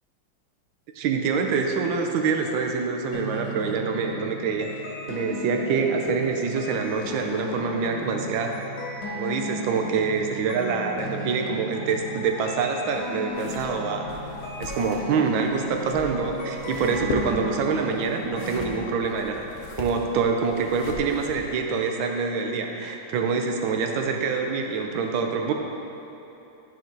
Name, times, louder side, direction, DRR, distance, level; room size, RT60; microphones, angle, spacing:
voice 1, 1.0-4.8 5.1-8.6 9.1-14.2 14.6-19.5 19.8-25.5, right 5 dB, 80° right, 3 dB, 1.4 m, -26 dB
sound 1, 3.1-18.9, left 1 dB, 65° left, 1.7 m, -36 dB
sound 2, 13.3-21.5, left 3 dB, 80° left, 0.7 m, -39 dB
10.5 x 4.4 x 3.8 m, 3.0 s
omnidirectional pair, 2.1 m